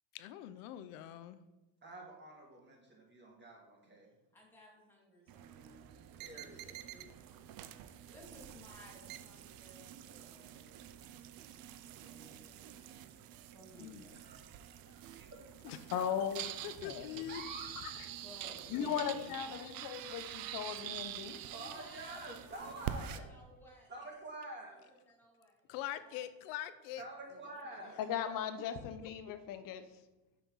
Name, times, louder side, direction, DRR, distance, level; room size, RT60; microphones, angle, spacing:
voice 1, 0.1-1.4 13.8-14.1 15.6-15.9 16.6-17.4 18.7-19.4 25.7-27.1 27.8-27.9 29.0-29.1, left 12 dB, 90° left, 13 dB, 0.6 m, -44 dB
voice 2, 1.8-4.1 6.2-6.8 14.1-15.3 16.0-16.1 17.3-17.7 21.5-23.3 23.9-24.8 27.0-28.1, right 2 dB, 25° right, -2 dB, 2.1 m, -48 dB
voice 3, 4.3-5.9 6.3-7.3 8.1-10.9 11.8-14.4 18.2-19.8 21.4-23.9 24.4-24.8 25.1-25.5 26.0-26.2 27.5-27.9, left 1 dB, 5° left, -1 dB, 2.2 m, -59 dB
sound 1, 5.3-23.2, right 11 dB, 55° right, 0.6 m, -47 dB
voice 4, 15.9-16.4 16.8-17.1 17.8-18.1 18.7-20.2 20.5-21.4 28.0-29.8, left 8 dB, 50° left, 9 dB, 0.8 m, -37 dB
6.1 x 5.5 x 3.9 m, 1.1 s
cardioid pair, 115°, 43 cm